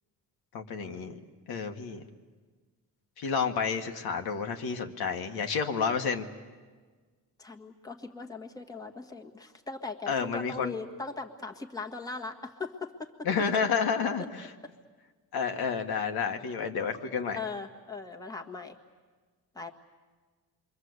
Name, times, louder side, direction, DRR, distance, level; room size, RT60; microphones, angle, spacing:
voice 1, 0.5-1.2 1.5-2.0 3.2-6.3 10.1-10.7 13.2-14.2 15.3-17.4, left 6 dB, 75° left, 4 dB, 1.8 m, -30 dB
voice 2, 7.4-13.3 14.6-14.7 17.3-18.8 19.5-19.7, left 3 dB, 10° left, 3 dB, 1.6 m, -39 dB
27.5 x 24.0 x 8.1 m, 1.4 s
cardioid pair, 135°, 38 cm